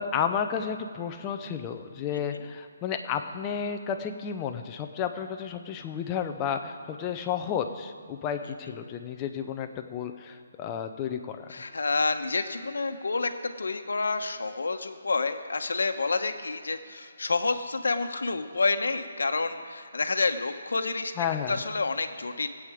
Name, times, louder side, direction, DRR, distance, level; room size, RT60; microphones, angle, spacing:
voice 1, 0.0-11.5 21.2-21.6, left 7 dB, 15° left, 6 dB, 0.7 m, -32 dB
voice 2, 11.5-21.1 21.5-22.5, left 3 dB, 90° left, 7 dB, 1.0 m, -29 dB
18.5 x 8.5 x 5.0 m, 2.4 s
hypercardioid pair, 170°, 0 cm